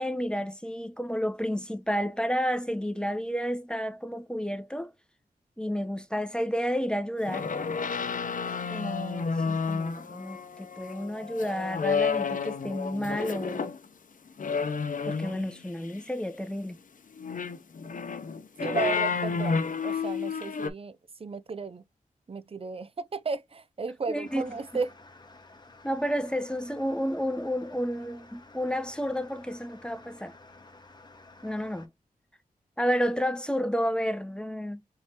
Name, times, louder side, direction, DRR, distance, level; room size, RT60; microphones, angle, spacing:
voice 1, 0.0-4.9 5.6-7.5 8.7-13.7 15.0-16.8 24.1-24.4 25.8-30.3 31.4-31.9 32.8-34.8, equal, 5° left, 0.8 m, -31 dB
sound 1, 7.3-13.8 14.4-15.6 17.1-20.7, left 5 dB, 60° left, 0.7 m, -31 dB
voice 2, 18.6-21.8 22.3-24.9, right 4 dB, 40° right, 0.5 m, -34 dB
sound 2, 24.2-31.9, left 2 dB, 30° left, 1.2 m, -53 dB
4.5 x 3.2 x 2.9 m
cardioid pair, 55°, 15 cm